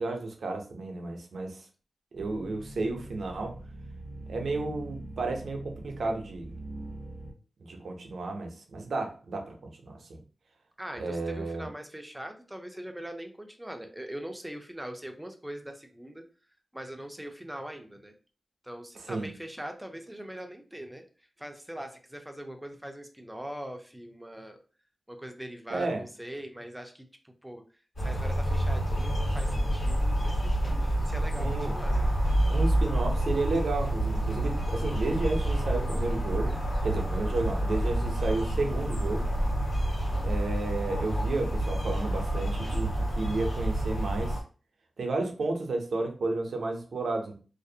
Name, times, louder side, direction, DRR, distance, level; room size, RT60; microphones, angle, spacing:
voice 1, 0.0-1.7 2.1-3.6 4.3-6.5 7.6-10.2 11.0-11.7 19.0-19.3 25.7-26.0 31.4-31.7 32.5-36.6 36.8-39.3 40.2-44.4 45.0-47.4, right 2 dB, 80° right, 3 dB, 0.5 m, -32 dB
sound 1, 2.2-7.3, right 1 dB, 20° left, 0.8 m, -43 dB
voice 2, 10.8-16.2 16.7-18.1 18.6-21.0 21.4-24.6 25.1-27.6 28.0-32.1, right 1 dB, 5° right, 4 dB, 0.4 m, -42 dB
sound 2, 28.0-44.4, right 1 dB, 70° left, 1.2 m, -28 dB
2.4 x 2.0 x 2.7 m, 0.36 s
wide cardioid pair, 105°, 0 cm